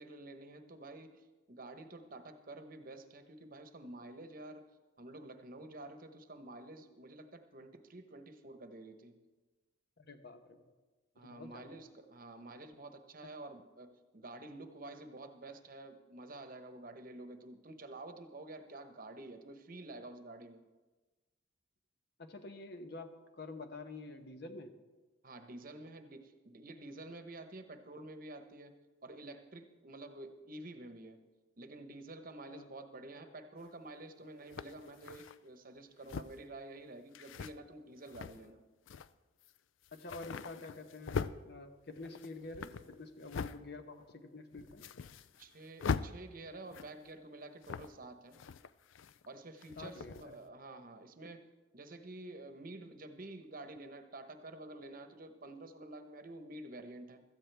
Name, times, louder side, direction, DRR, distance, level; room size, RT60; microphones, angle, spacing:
voice 1, 0.0-4.7 5.0-9.2 11.2-20.6 25.2-28.7 29.0-31.2 31.6-38.6 45.4-48.4 49.3-51.5 51.7-57.2, right 2 dB, 45° right, 8 dB, 1.0 m, -49 dB
voice 2, 10.0-10.6 11.2-11.8 22.2-24.7 32.5-32.7 39.9-44.8 49.8-50.4, left 2 dB, 55° left, 7 dB, 1.0 m, -48 dB
sound 1, 33.6-33.7 34.5-35.4 36.0-36.5 37.1-37.5 38.0-38.5 38.9-39.1 39.4-39.6 39.8-41.4 41.9-43.6 44.0-44.1 44.5-45.5 45.8-46.1 46.6-47.1 47.6-48.0 48.3-49.3 49.6-50.3, left 5 dB, 80° left, 0.4 m, -41 dB
16.5 x 13.5 x 3.4 m, 1.2 s
head